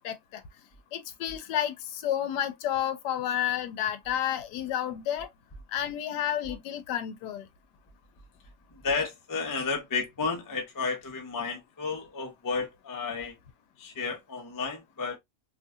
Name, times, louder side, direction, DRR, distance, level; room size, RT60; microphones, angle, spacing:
voice 1, 0.0-0.4 0.9-5.3 5.7-7.4, left 11 dB, 80° left, 1.2 m, -31 dB
voice 2, 8.8-13.3 13.8-15.2, left 4 dB, 30° left, 0.3 m, -32 dB
3.0 x 2.6 x 2.3 m
omnidirectional pair, 1.8 m